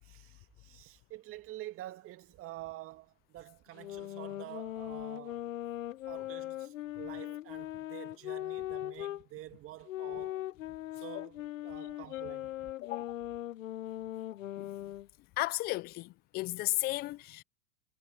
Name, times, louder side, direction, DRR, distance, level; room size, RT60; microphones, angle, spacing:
voice 1, 0.0-5.5 6.1-10.5 10.9-12.7, right 15 dB, 30° right, 2.3 m, -48 dB
sound 1, 3.7-9.2 9.9-15.1, left 14 dB, 65° left, 1.7 m, -40 dB
voice 2, 14.6-14.9 15.4-17.4, left 19 dB, 20° left, 0.5 m, -34 dB
hypercardioid pair, 115°, 44 cm